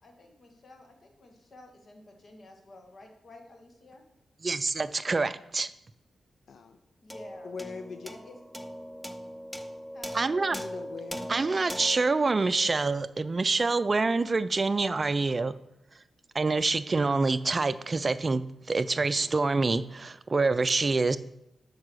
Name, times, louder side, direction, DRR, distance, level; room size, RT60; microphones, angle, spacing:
voice 1, 0.0-4.0 7.0-7.5 8.0-8.4 9.9-10.2, left 2 dB, 55° left, 3 dB, 1.7 m, -51 dB
voice 2, 4.4-5.7 10.1-10.6 11.3-15.5 16.3-18.4 18.7-21.2, right 3 dB, 40° right, 14 dB, 0.4 m, -26 dB
voice 3, 6.5-6.8 7.4-8.1 10.5-11.3, left 5 dB, 75° left, 7 dB, 0.5 m, -41 dB
sound 1, 7.1-13.7, equal, 5° left, 0.7 m, -41 dB
7.3 x 4.8 x 6.3 m, 0.83 s
supercardioid pair, 45°, 0 cm